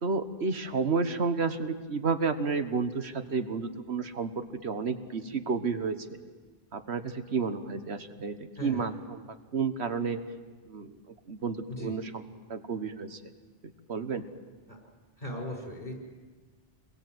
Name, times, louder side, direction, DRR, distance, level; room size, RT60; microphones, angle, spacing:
voice 1, 0.0-6.0 6.7-9.2 9.5-10.2 10.6-10.9 11.3-12.2 12.5-13.2 13.9-14.2, right 4 dB, 90° right, 9 dB, 1.6 m, -31 dB
voice 2, 15.2-15.9, equal, 50° left, 1 dB, 6.4 m, -37 dB
27.5 x 22.0 x 8.0 m, 1.4 s
omnidirectional pair, 1.1 m